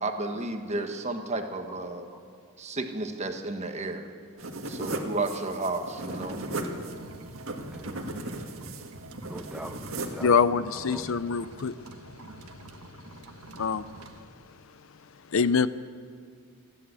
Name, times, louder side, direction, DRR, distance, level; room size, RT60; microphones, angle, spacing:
voice 1, 0.0-2.1 2.6-4.1 4.7-6.4, right 2 dB, 30° right, 5 dB, 1.4 m, -32 dB
voice 2, 2.1-2.4 4.8-5.1 7.6-8.0 9.3-10.4 10.7-11.1, right 1 dB, 5° right, 5 dB, 0.6 m, -42 dB
sound 1, 4.4-10.3, right 2 dB, 65° right, 2.0 m, -37 dB
sound 2, 6.0-14.2, right 2 dB, 80° right, 1.5 m, -46 dB
voice 3, 10.2-11.8 13.6-13.9 15.3-15.7, left 6 dB, 60° left, 15 dB, 0.5 m, -24 dB
29.0 x 11.0 x 8.3 m, 2.3 s
head